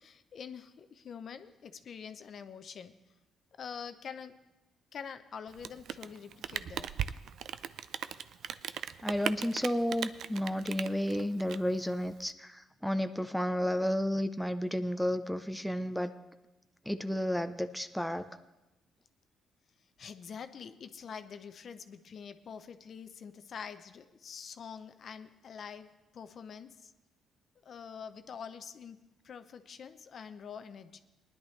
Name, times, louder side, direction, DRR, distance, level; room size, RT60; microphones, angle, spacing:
voice 1, 0.0-2.9 3.6-4.4 4.9-7.0 20.0-26.9 27.6-31.0, left 7 dB, 55° left, 10 dB, 0.7 m, -46 dB
Rain, 5.5-12.3, right 9 dB, 70° right, 0.4 m, -38 dB
voice 2, 9.0-16.1 16.9-18.2, equal, ahead, 8 dB, 0.6 m, -32 dB
19.0 x 10.5 x 3.2 m, 1.0 s
cardioid pair, 90°, 0 cm